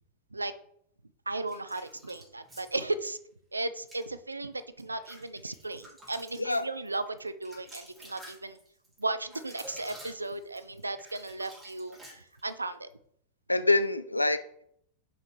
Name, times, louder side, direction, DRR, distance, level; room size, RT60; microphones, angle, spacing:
voice 1, 1.3-3.2 3.5-8.6 9.0-12.9, right 2 dB, 80° right, 12 dB, 0.5 m, -35 dB
sound 1, 1.5-3.1 3.8-4.1 4.6-12.6, equal, 15° right, 3.1 m, -51 dB
voice 2, 13.5-14.6, left 2 dB, 85° left, 12 dB, 0.4 m, -26 dB
5.8 x 5.3 x 4.6 m, 0.69 s
figure-of-eight pair, 90°, 0 cm